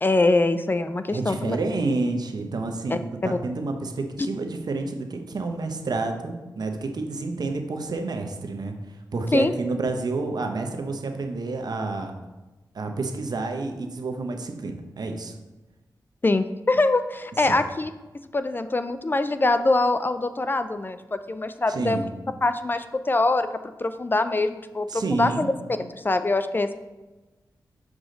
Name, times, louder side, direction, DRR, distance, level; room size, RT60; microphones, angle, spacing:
voice 1, 0.0-1.6 2.9-3.0 9.3-9.5 16.2-17.9 18.3-22.1 22.4-23.5 23.8-25.5 25.8-26.8, left 2 dB, 25° left, 10 dB, 0.3 m, -23 dB
voice 2, 1.1-12.1 12.7-15.3 17.4-17.6 21.7-22.1 24.9-25.5, right 3 dB, 65° right, 4 dB, 0.8 m, -29 dB
6.4 x 4.9 x 3.8 m, 1.1 s
wide cardioid pair, 80°, 7 cm